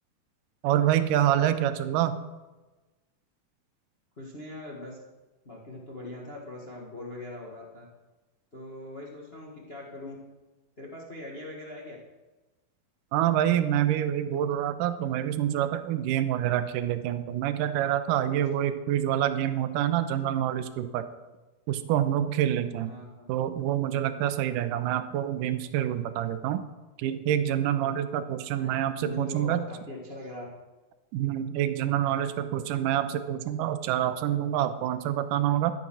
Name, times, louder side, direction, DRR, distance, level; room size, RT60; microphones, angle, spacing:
voice 1, 0.6-2.2 13.1-21.1 21.7-22.9 23.3-26.6 27.0-29.6 31.1-35.7, right 11 dB, 80° right, 11 dB, 2.1 m, -27 dB
voice 2, 4.2-5.0 5.4-7.8 8.5-10.1 10.8-12.0 22.8-23.3 28.5-30.5, left 1 dB, 60° left, -2 dB, 0.6 m, -41 dB
13.5 x 9.1 x 6.2 m, 1.1 s
omnidirectional pair, 4.3 m